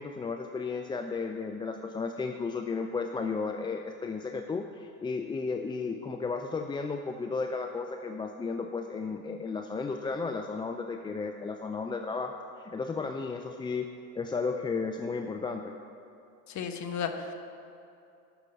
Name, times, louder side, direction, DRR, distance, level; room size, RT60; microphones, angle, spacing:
voice 1, 0.0-13.9 14.2-15.8, left 4 dB, 10° left, 5 dB, 0.3 m, -34 dB
voice 2, 16.5-17.3, left 6 dB, 40° left, 6 dB, 1.2 m, -34 dB
13.5 x 6.0 x 5.7 m, 2.7 s
hypercardioid pair, 80°, 44 cm